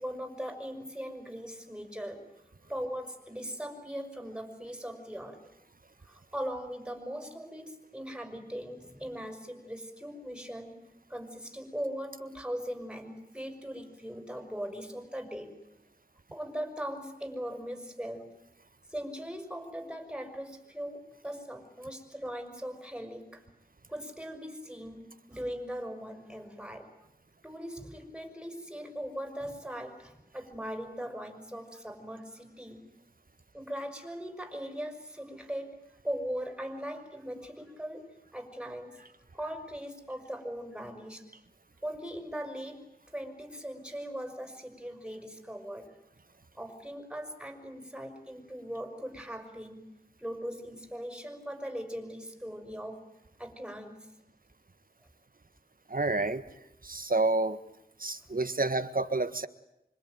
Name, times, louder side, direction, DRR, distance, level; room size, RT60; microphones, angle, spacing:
voice 1, 0.0-2.2 2.7-5.4 6.0-10.8 11.1-15.5 16.3-18.2 18.9-23.4 23.9-26.9 27.4-32.8 33.5-35.8 36.0-39.0 39.3-41.2 41.8-45.9 46.6-49.8 50.2-53.0 53.4-54.1 58.3-58.4, equal, 5° right, 6 dB, 6.0 m, -40 dB
voice 2, 55.9-56.4 56.8-57.6 58.0-59.5, right 2 dB, 60° right, 10 dB, 1.6 m, -29 dB
26.0 x 24.5 x 9.4 m, 0.83 s
wide cardioid pair, 50°, 17 cm